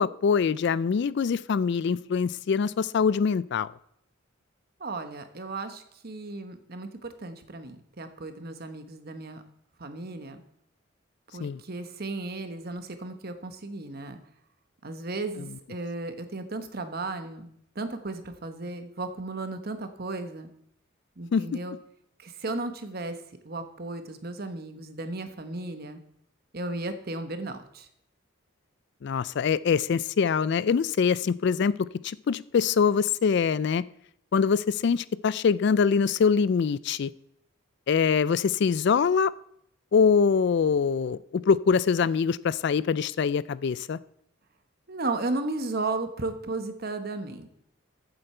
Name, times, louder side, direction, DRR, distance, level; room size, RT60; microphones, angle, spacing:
voice 1, 0.0-3.7 11.4-11.6 21.3-21.4 29.0-31.7 32.0-33.8 34.3-37.1 37.9-39.3 39.9-41.2 41.5-44.0, left 6 dB, 55° left, 19 dB, 0.3 m, -24 dB
voice 2, 4.8-9.4 9.8-10.4 11.3-14.2 14.8-17.5 17.7-20.5 21.2-21.7 22.2-23.2 23.4-26.0 26.5-27.9 44.9-47.5, right 2 dB, 45° right, 8 dB, 1.1 m, -35 dB
14.5 x 7.9 x 4.4 m, 0.72 s
head